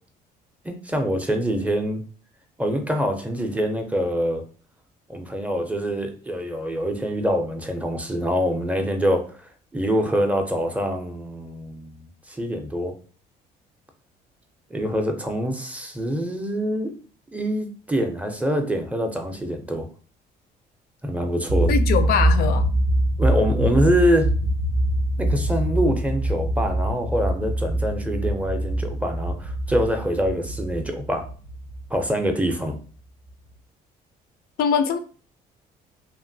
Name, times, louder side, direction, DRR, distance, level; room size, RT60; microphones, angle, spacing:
voice 1, 0.6-2.0 2.6-4.4 5.1-12.9 14.7-17.0 17.3-19.9 21.0-21.7 23.2-24.3 25.2-31.2 31.9-32.8, equal, 10° right, 0.4 m, -25 dB
sound 1, 21.5-32.8, right 1 dB, 75° right, 0.5 m, -24 dB
voice 2, 21.7-22.7 34.6-35.0, left 6 dB, 65° left, 0.4 m, -22 dB
2.8 x 2.5 x 2.6 m
cardioid pair, 110°, 17 cm